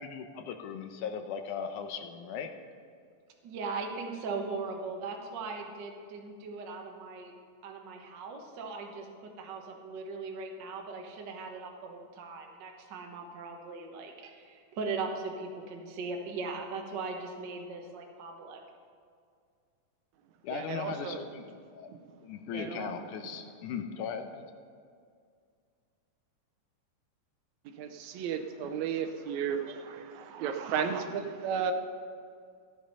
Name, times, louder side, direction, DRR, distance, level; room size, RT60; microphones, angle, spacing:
voice 1, 0.0-2.5 20.4-21.9 22.2-24.5, left 7 dB, 80° left, 6 dB, 2.3 m, -38 dB
voice 2, 3.4-7.3 7.6-18.6, right 4 dB, 50° right, 2 dB, 1.3 m, -39 dB
voice 3, 20.5-21.2 21.9-22.0 22.5-23.0 27.7-31.7, right 7 dB, 70° right, 7 dB, 2.0 m, -34 dB
13.5 x 10.5 x 5.5 m, 2.2 s
omnidirectional pair, 3.6 m